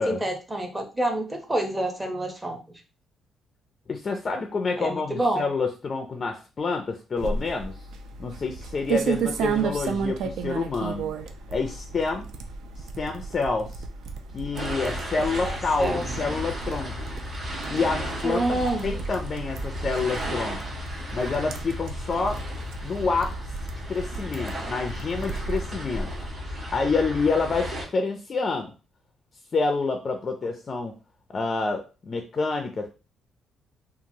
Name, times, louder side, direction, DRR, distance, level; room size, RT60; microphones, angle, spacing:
voice 1, 0.0-2.6 4.8-5.4 15.4-16.0 18.2-18.9, right 1 dB, 10° right, 3 dB, 0.6 m, -27 dB
voice 2, 3.9-7.7 8.2-11.1 11.5-12.3 13.0-13.7 14.3-17.1 17.7-20.6 21.1-22.4 22.8-23.3 23.9-26.1 26.7-28.7 29.5-31.0 31.3-32.9, left 4 dB, 35° left, 4 dB, 0.3 m, -28 dB
sound 1, 7.2-26.3, right 6 dB, 80° right, 0.3 m, -34 dB
sound 2, 14.5-27.8, equal, 45° right, 1.3 m, -34 dB
2.9 x 2.3 x 2.6 m, 0.33 s
cardioid pair, 130°, 0 cm